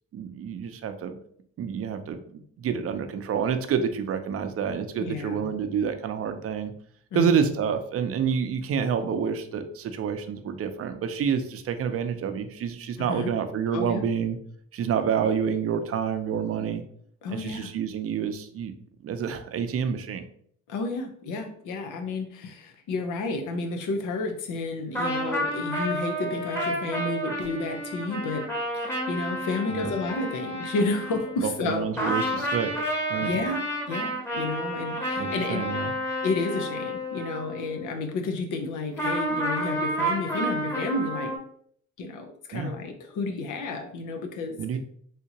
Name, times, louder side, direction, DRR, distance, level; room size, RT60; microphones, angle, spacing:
voice 1, 0.1-1.2 1.6-6.7 7.1-14.4 14.7-16.8 17.3-18.7 19.0-20.2 29.7-29.9 31.4-32.7 33.1-33.3 35.2-35.9 42.5-42.7 44.6-44.8, right 7 dB, 50° right, 8 dB, 0.5 m, -28 dB
voice 2, 5.0-5.5 7.1-7.5 13.0-13.3 13.7-14.1 17.2-17.7 20.7-28.5 28.7-31.9 33.2-35.7 36.2-41.3 42.0-44.8, left 3 dB, 85° left, 5 dB, 0.7 m, -31 dB
sound 1, 24.9-31.7 32.0-37.9 39.0-41.4, equal, 10° left, 0.9 m, -30 dB
3.5 x 2.8 x 2.8 m, 0.63 s
cardioid pair, 90°, 30 cm